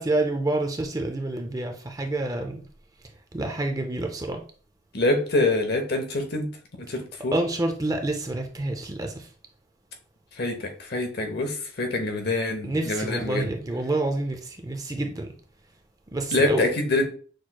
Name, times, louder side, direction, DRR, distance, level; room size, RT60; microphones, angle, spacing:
voice 1, 0.0-2.6 3.3-4.4 7.3-9.3 12.6-15.3 16.1-16.7, right 2 dB, 20° right, 0.4 m, -28 dB
voice 2, 4.9-6.5 6.8-7.3 10.4-13.5 16.3-17.1, left 2 dB, 50° left, 0.8 m, -25 dB
6.1 x 3.1 x 2.2 m
head